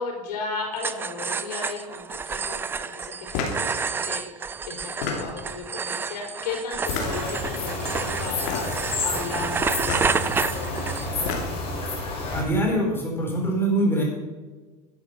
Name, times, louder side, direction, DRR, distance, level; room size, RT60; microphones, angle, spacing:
voice 1, 0.0-11.4, left 4 dB, 90° left, 0 dB, 4.6 m, -35 dB
sound 1, 0.8-11.3, right 5 dB, 10° right, 0.3 m, -30 dB
sound 2, 3.3-3.7 4.8-5.5 6.8-7.4 8.4-8.9 9.8-10.1 11.0-11.7, left 4 dB, 60° left, 2.8 m, -30 dB
sound 3, 6.8-12.4, left 2 dB, 30° left, 4.8 m, -30 dB
voice 2, 12.3-14.0, right 1 dB, 10° left, -1 dB, 4.4 m, -23 dB
11.5 x 8.1 x 7.0 m, 1.3 s
supercardioid pair, 135°, 20 cm